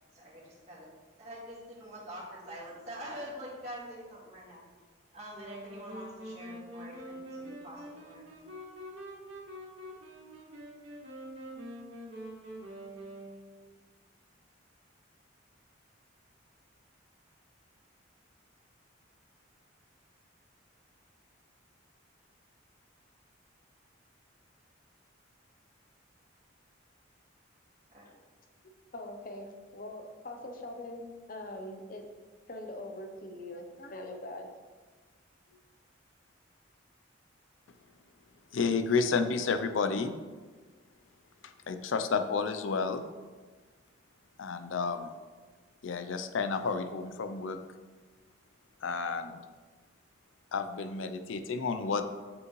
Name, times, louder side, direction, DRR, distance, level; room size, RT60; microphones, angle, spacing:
voice 1, 0.1-0.9 1.2-4.6 5.1-8.3 27.9-28.1, equal, 35° right, -7 dB, 1.9 m, -45 dB
sound 1, 5.3-13.8, equal, 70° right, 1.8 m, -45 dB
voice 2, 28.6-32.1 32.5-34.5 35.5-35.6, left 1 dB, 45° left, 4 dB, 0.7 m, -43 dB
voice 3, 38.5-40.1 41.7-43.0 44.4-45.1 45.8-47.6 48.8-49.4 50.5-52.2, left 5 dB, 75° left, 9 dB, 0.5 m, -31 dB
8.2 x 5.3 x 3.1 m, 1.4 s
head